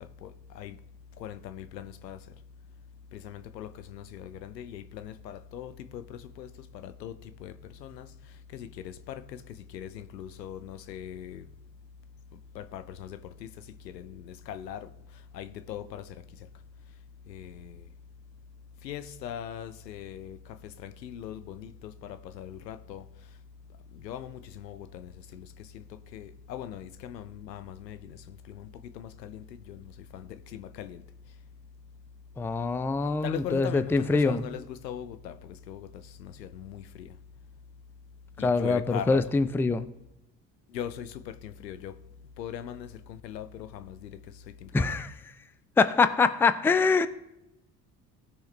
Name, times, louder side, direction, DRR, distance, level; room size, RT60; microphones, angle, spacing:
voice 1, 1.2-2.2 3.2-3.7 4.6-5.1 5.5-6.0 6.4-6.5 7.0-7.1 7.4-7.5 9.7-9.9 10.1-11.4 12.6-12.8 14.5-14.8 15.4-16.0 18.8-20.4 21.0-21.7 22.4-23.0 24.0-24.8 26.1-28.0 29.0-29.3 30.8-30.9 33.2-33.9 34.2-34.5 34.8-35.3 35.7-35.8 36.7-36.8 38.6-39.2 40.7-41.1 41.6-41.9 42.4-42.9 43.2-43.5, left 10 dB, 80° left, 0.7 m, -38 dB
voice 2, 32.4-34.4 38.4-39.9 44.7-45.1 45.8-47.1, left 4 dB, 5° left, 0.4 m, -24 dB
17.5 x 6.4 x 3.3 m
figure-of-eight pair, 55°, 49 cm